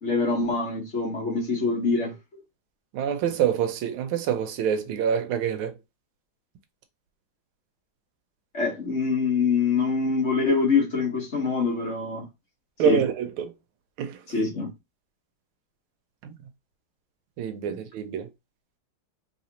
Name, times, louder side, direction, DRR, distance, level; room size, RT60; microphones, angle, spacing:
voice 1, 0.0-2.1 8.5-12.2 12.8-13.0 14.3-14.7 17.7-17.8, left 4 dB, 40° left, 1.3 m, -24 dB
voice 2, 2.9-5.7 12.8-13.5 14.0-14.2 16.2-16.4 17.4-18.3, right 8 dB, 85° right, 1.6 m, -26 dB
4.1 x 3.3 x 2.8 m
omnidirectional pair, 2.3 m